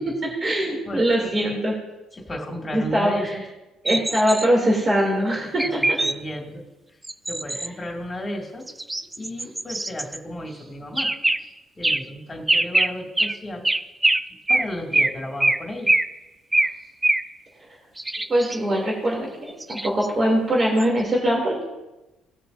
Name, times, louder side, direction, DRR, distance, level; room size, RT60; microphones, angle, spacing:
voice 1, 0.0-1.7 2.7-3.3 3.8-6.0 18.3-19.3 19.7-21.6, right 1 dB, 35° right, -3 dB, 3.2 m, -22 dB
voice 2, 0.8-1.5 2.1-3.4 5.6-6.6 7.3-8.7 9.2-11.1 11.4-13.7 14.5-15.9, left 1 dB, 25° left, 0 dB, 2.5 m, -34 dB
sound 1, 3.9-4.5 5.6-6.1 7.0-7.7 8.7-10.2 11.0-11.4 11.8-12.0 12.5-12.9 13.2-13.4 13.6-14.2 14.5-14.7 14.9-15.1 15.4-15.6 15.9-16.1 16.5-16.7 17.0-17.2 18.0-18.6 19.6-20.1 20.8-20.9, right 2 dB, 15° right, 0.4 m, -22 dB
18.0 x 6.7 x 2.8 m, 1.0 s
supercardioid pair, 75°, 0 cm